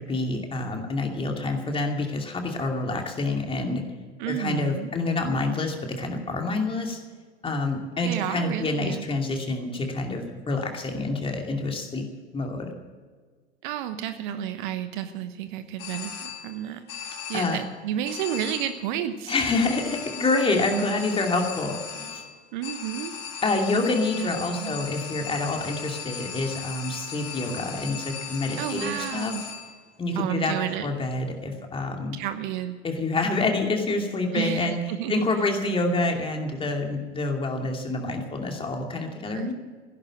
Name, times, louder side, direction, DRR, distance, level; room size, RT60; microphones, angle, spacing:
voice 1, 0.0-3.8 4.2-7.0 7.4-12.0 12.3-12.7 17.3-17.6 19.3-22.2 23.4-29.3 30.0-30.5 30.8-32.2 32.8-34.8 35.1-39.5, left 2 dB, 15° left, 3 dB, 2.6 m, -27 dB
voice 2, 4.2-4.9 8.0-9.1 13.6-19.3 22.5-23.1 24.2-24.3 24.6-24.8 28.6-29.4 30.1-30.9 32.1-32.8 34.3-35.3 39.3-39.5, right 11 dB, 50° right, 10 dB, 1.1 m, -31 dB
sound 1, 15.8-16.6 16.9-17.7 18.0-18.9 19.3-29.8, left 7 dB, 45° left, 4.6 m, -37 dB
16.0 x 11.0 x 7.6 m, 1.5 s
figure-of-eight pair, 85°, 32 cm